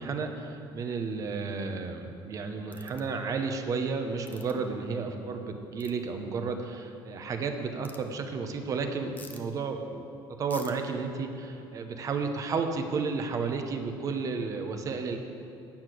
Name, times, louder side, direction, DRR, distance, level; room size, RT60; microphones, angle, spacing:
voice 1, 0.0-10.1 10.4-15.2, right 4 dB, 35° right, 6 dB, 0.8 m, -32 dB
sound 1, 2.7-3.0 4.3-4.5 5.8-5.9 7.8-8.0 9.2-9.4 10.5-10.7, left 4 dB, 20° left, 0.7 m, -47 dB
8.7 x 7.8 x 6.2 m, 2.8 s
cardioid pair, 145°, 9 cm